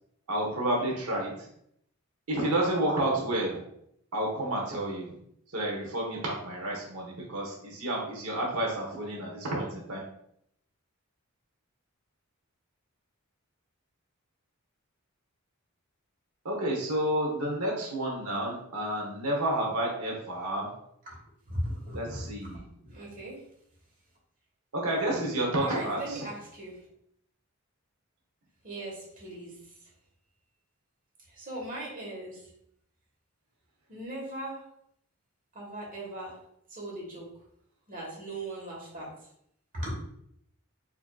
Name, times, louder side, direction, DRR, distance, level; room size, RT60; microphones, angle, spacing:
voice 1, 0.3-1.5 2.3-3.6 4.1-5.1 5.5-10.0 16.4-20.7 21.9-22.6 24.7-26.2, right 1 dB, 85° right, -1 dB, 0.9 m, -30 dB
voice 2, 21.5-22.2 22.8-23.4 25.6-26.8 28.6-29.5 31.3-32.4 33.9-34.6 35.5-36.4 36.7-37.3 37.9-39.1 39.7-39.9, right 1 dB, 40° right, -3 dB, 1.3 m, -38 dB
4.8 x 2.7 x 2.3 m, 0.72 s
head